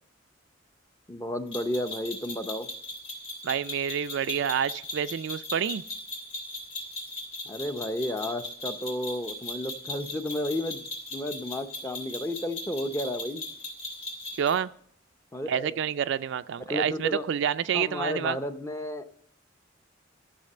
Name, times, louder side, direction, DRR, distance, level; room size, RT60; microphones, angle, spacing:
voice 1, 1.1-2.7 7.5-10.8 11.1-13.4 15.3-15.7 16.7-17.3 17.7-19.1, left 1 dB, 15° left, 8 dB, 0.7 m, -32 dB
sound 1, 1.5-14.6, left 1 dB, 75° left, 3.0 m, -38 dB
voice 2, 3.4-5.8 14.4-14.7 15.5-18.4, right 8 dB, 65° right, 13 dB, 0.4 m, -28 dB
13.0 x 6.7 x 6.6 m, 0.66 s
head